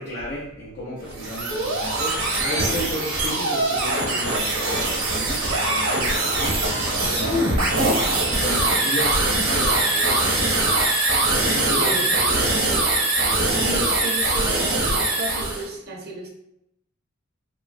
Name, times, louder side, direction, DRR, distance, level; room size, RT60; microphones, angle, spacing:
voice 1, 0.0-7.9 8.4-10.9 11.2-12.7, equal, 55° left, -7 dB, 0.6 m, -33 dB
sound 1, 1.0-15.7, right 2 dB, 85° right, 0.9 m, -22 dB
voice 2, 13.5-16.3, right 2 dB, 50° right, -1 dB, 0.6 m, -32 dB
3.0 x 2.3 x 2.5 m, 0.82 s
head